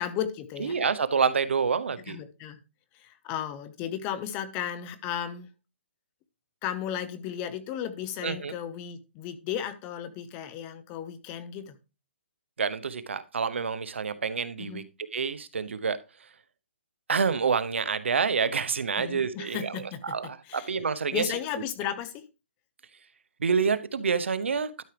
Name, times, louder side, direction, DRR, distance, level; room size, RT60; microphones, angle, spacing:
voice 1, 0.0-0.8 2.0-2.6 2.9-5.5 6.6-11.8 14.6-14.9 19.0-20.7 21.1-22.2, left 9 dB, 20° left, 0.8 m, -35 dB
voice 2, 0.6-2.2 8.2-8.5 12.6-14.8 15.1-16.0 17.1-19.7 20.0-21.2 23.4-24.8, right 5 dB, 80° right, 0.9 m, -27 dB
12.0 x 6.0 x 3.4 m
hypercardioid pair, 160°, 6 cm